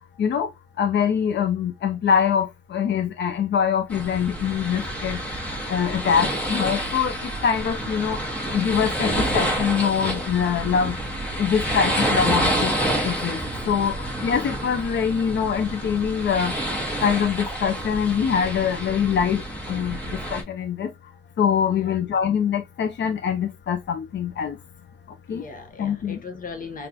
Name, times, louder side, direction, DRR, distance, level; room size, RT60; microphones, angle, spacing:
voice 1, 0.8-5.2 5.7-8.2 8.5-11.0 11.4-12.7 13.0-13.4 13.7-16.5 17.0-19.4 19.7-20.0 20.3-20.9 21.4-24.6 25.3-25.4 25.8-26.2, left 7 dB, 80° left, 0.6 m, -24 dB
sound 1, 3.9-20.4, right 1 dB, 5° left, 1.7 m, -28 dB
voice 2, 6.0-6.4 13.5-13.9 21.7-22.0 25.3-26.9, left 4 dB, 50° left, 1.0 m, -39 dB
4.1 x 3.3 x 2.8 m
wide cardioid pair, 170°, 18 cm